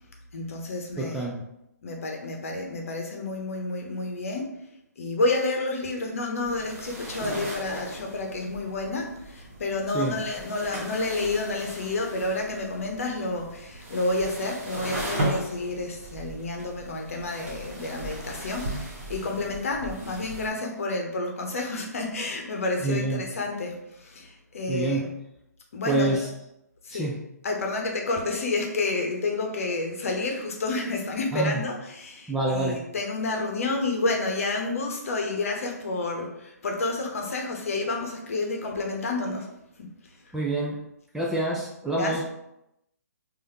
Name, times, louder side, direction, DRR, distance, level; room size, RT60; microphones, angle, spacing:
voice 1, 0.3-1.2 1.8-4.6 5.0-25.1 25.7-26.3 26.8-27.1 27.4-39.5 39.8-39.9 41.9-42.2, left 2 dB, 55° left, 1 dB, 0.9 m, -30 dB
voice 2, 1.0-1.4 9.9-10.2 22.8-23.2 24.7-25.1 25.9-26.3 26.9-27.2 31.3-31.6 32.3-32.8 40.3-40.8 41.1-42.2, right 2 dB, 5° right, -5 dB, 0.3 m, -27 dB
sound 1, 6.4-20.5, right 1 dB, 45° right, 1.3 m, -37 dB
4.7 x 2.6 x 2.9 m, 0.85 s
figure-of-eight pair, 135°, 9 cm